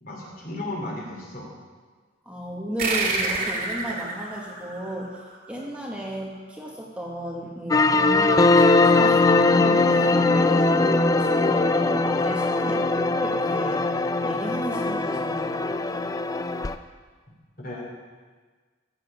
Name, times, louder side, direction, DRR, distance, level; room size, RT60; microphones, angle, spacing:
voice 1, 0.0-1.5 17.6-17.9, left 1 dB, 45° left, -2 dB, 2.9 m, -34 dB
voice 2, 2.2-13.8 14.2-16.0, equal, 5° right, -3 dB, 1.2 m, -34 dB
sound 1, 2.8-5.8, right 3 dB, 50° right, 2.0 m, -29 dB
sound 2, 7.7-16.7, left 3 dB, 20° left, 0.4 m, -21 dB
15.0 x 7.7 x 4.9 m, 1.4 s
head